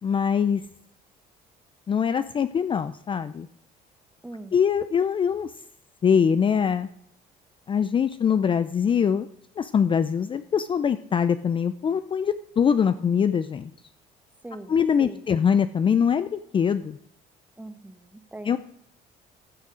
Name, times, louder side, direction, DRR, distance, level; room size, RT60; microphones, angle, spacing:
voice 1, 0.0-0.6 1.9-3.5 4.5-5.5 6.0-6.9 7.7-9.3 9.6-13.7 14.7-17.0 18.4-18.6, left 7 dB, 30° left, 12 dB, 0.4 m, -23 dB
voice 2, 4.2-4.5 14.4-15.2 17.6-18.6, right 1 dB, 10° right, 10 dB, 1.1 m, -41 dB
15.0 x 6.3 x 5.0 m, 0.73 s
cardioid pair, 110°, 17 cm